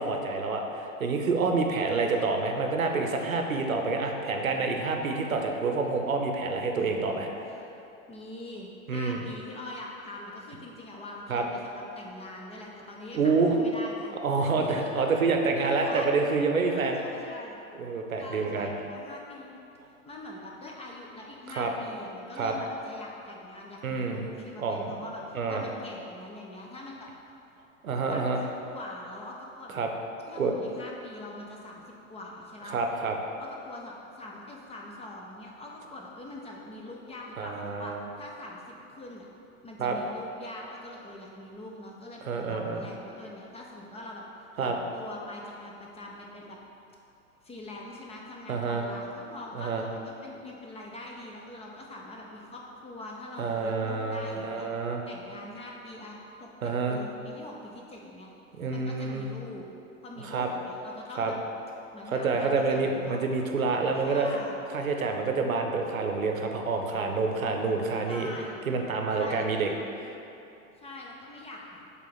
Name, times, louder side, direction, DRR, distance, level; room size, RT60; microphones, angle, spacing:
voice 1, 0.0-7.3 8.9-9.2 11.3-11.4 13.1-13.6 14.2-17.0 17.8-18.7 21.5-21.7 22.4-22.5 23.8-24.3 24.6-25.0 25.3-25.6 27.8-28.4 29.7-29.9 30.4-30.6 32.7-33.1 37.4-38.0 39.8-40.0 42.3-42.8 44.6-44.8 48.5-48.9 49.5-49.8 53.4-55.0 56.6-57.0 58.6-59.3 60.2-60.5 61.2-61.3 62.1-64.3 64.7-68.3 68.7-69.7, right 4 dB, 85° right, 3 dB, 0.7 m, -28 dB
voice 2, 1.9-2.3 6.8-7.7 8.1-14.1 14.4-15.3 15.5-16.1 16.7-17.6 18.2-19.6 20.0-27.1 28.1-29.8 30.3-31.8 32.1-32.8 33.4-39.3 39.6-46.6 47.4-58.3 58.7-59.7 60.0-61.4 61.9-63.2 64.0-64.6 68.1-68.6 69.1-69.7 69.9-70.0 70.8-71.8, left 1 dB, 15° left, -1 dB, 0.6 m, -43 dB
7.4 x 3.6 x 4.0 m, 2.8 s
figure-of-eight pair, 90°, 40 cm